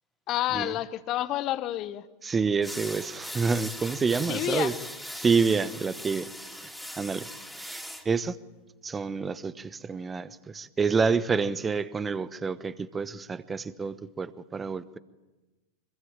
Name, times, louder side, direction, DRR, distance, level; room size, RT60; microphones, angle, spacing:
voice 1, 0.3-2.1 4.3-4.7, left 14 dB, 35° left, 1.2 m, -29 dB
voice 2, 2.2-4.7 5.2-6.3 7.0-7.3 7.6-8.3 8.8-15.0, right 5 dB, 15° right, 1.1 m, -28 dB
sound 1, 2.6-8.0, equal, ahead, 3.5 m, -39 dB
25.5 x 23.0 x 9.0 m
figure-of-eight pair, 90°, 0 cm